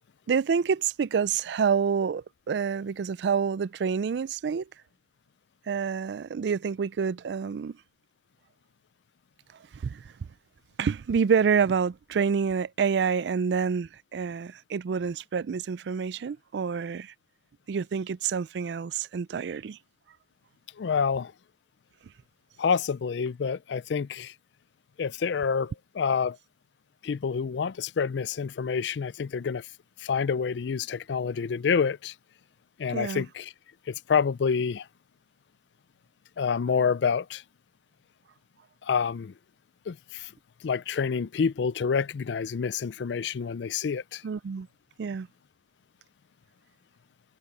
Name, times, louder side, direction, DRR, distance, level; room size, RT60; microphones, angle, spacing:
voice 1, 0.3-4.7 5.7-7.8 9.7-10.0 10.8-17.1 17.7-19.8 32.9-33.2 44.2-44.7 45.0-45.3, right 6 dB, 70° right, 0.4 m, -27 dB
voice 2, 20.8-21.3 22.6-24.3 25.0-26.4 27.0-29.7 30.0-32.1 32.8-33.5 33.9-34.9 36.4-37.4 38.8-39.3 39.9-40.3 40.6-44.2, left 6 dB, 80° left, 0.4 m, -28 dB
head